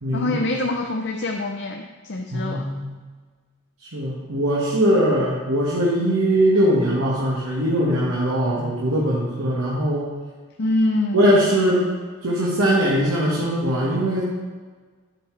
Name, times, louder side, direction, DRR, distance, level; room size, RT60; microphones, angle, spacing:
voice 1, 0.1-2.7 10.6-11.2, left 2 dB, 50° left, 2 dB, 0.6 m, -25 dB
voice 2, 2.3-2.9 3.8-10.1 11.1-11.8 12.2-14.2, equal, 85° right, -6 dB, 1.6 m, -21 dB
11.0 x 7.7 x 3.3 m, 1.4 s
head